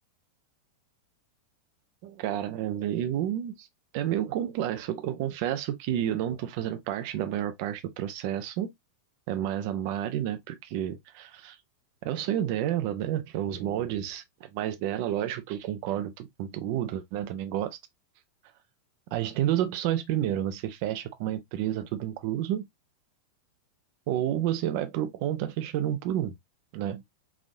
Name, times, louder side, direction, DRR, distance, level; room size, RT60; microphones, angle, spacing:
voice 1, 2.0-3.7 3.9-8.7 9.3-11.6 12.0-17.8 19.1-22.7 24.1-26.3 26.7-27.0, right 11 dB, 45° right, 0.7 m, -30 dB
4.0 x 2.9 x 2.6 m
figure-of-eight pair, 90°, 0 cm